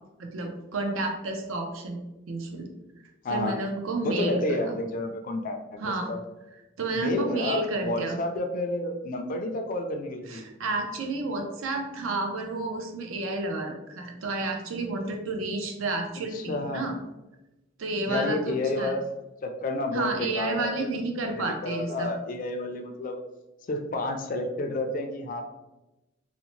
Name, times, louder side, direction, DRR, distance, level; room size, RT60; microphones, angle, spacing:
voice 1, 0.2-2.0 2.3-2.7 3.3-4.7 5.8-6.1 6.8-8.2 10.3-17.0 17.8-19.0 19.9-22.1, right 2 dB, 80° right, 4 dB, 0.5 m, -31 dB
voice 2, 3.2-3.6 4.0-5.6 6.1-6.2 6.9-10.4 16.3-16.9 18.1-19.1 19.4-23.2 23.7-25.4, left 2 dB, 40° left, 5 dB, 0.3 m, -30 dB
2.7 x 2.0 x 3.0 m, 0.99 s
head